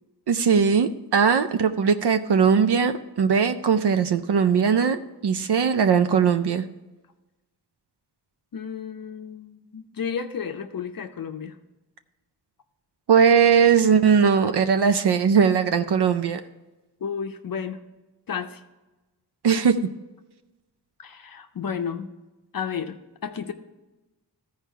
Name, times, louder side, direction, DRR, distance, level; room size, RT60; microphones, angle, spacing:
voice 1, 0.3-6.6 13.1-16.4 19.4-19.8, right 6 dB, 70° right, 9 dB, 0.6 m, -19 dB
voice 2, 8.5-11.6 17.0-17.8 18.3-18.6 21.0-22.1 22.5-23.5, left 7 dB, 55° left, 7 dB, 0.6 m, -32 dB
14.0 x 4.8 x 4.5 m, 1.1 s
wide cardioid pair, 110°, 41 cm